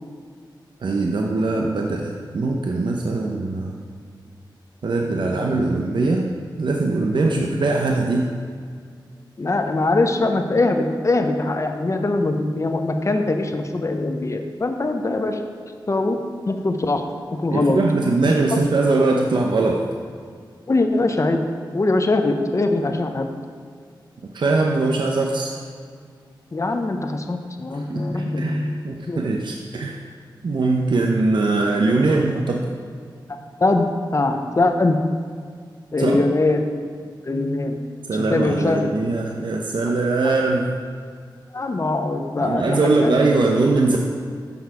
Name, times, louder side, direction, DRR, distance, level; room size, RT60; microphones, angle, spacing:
voice 1, 0.8-3.8 4.8-6.3 6.6-8.3 17.5-19.8 24.3-25.5 27.9-30.0 30.4-32.7 36.0-36.2 38.1-40.8 42.4-44.0, right 3 dB, 65° right, 0 dB, 0.7 m, -21 dB
voice 2, 5.3-5.7 7.3-7.5 9.4-15.4 15.9-16.2 16.5-17.0 17.4-17.8 18.2-18.6 20.7-23.3 26.5-28.7 29.1-29.2 33.6-35.0 35.9-36.7 37.2-37.8 38.1-38.9 41.5-43.2, left 2 dB, 35° left, 5 dB, 0.7 m, -22 dB
7.0 x 6.2 x 4.8 m, 2.1 s
wide cardioid pair, 65°, 8 cm